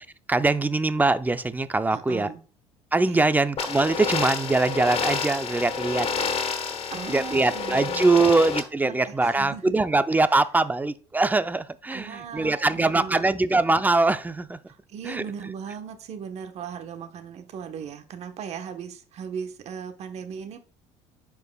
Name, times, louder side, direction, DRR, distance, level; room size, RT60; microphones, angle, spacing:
voice 1, 0.0-2.3 2.9-6.1 7.1-14.6 15.0-15.2, right 3 dB, 15° right, 0.5 m, -23 dB
voice 2, 1.9-2.4 3.1-3.3 6.9-8.3 8.8-9.9 11.9-13.4 14.7-20.6, right 7 dB, 55° right, 1.1 m, -38 dB
sound 1, 3.6-8.6, left 5 dB, 45° left, 1.3 m, -29 dB
10.5 x 4.7 x 2.3 m
supercardioid pair, 85°, 13 cm